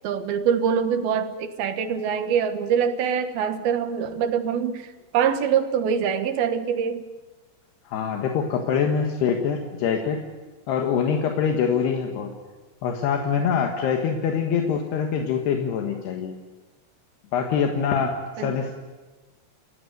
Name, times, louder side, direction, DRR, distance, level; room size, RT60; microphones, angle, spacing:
voice 1, 0.0-7.1 18.4-18.7, right 7 dB, 75° right, 8 dB, 3.2 m, -24 dB
voice 2, 7.9-10.2 10.7-12.3 12.8-16.3 17.3-18.7, left 6 dB, 80° left, 3 dB, 3.7 m, -24 dB
29.5 x 15.0 x 9.4 m, 1.2 s
omnidirectional pair, 4.6 m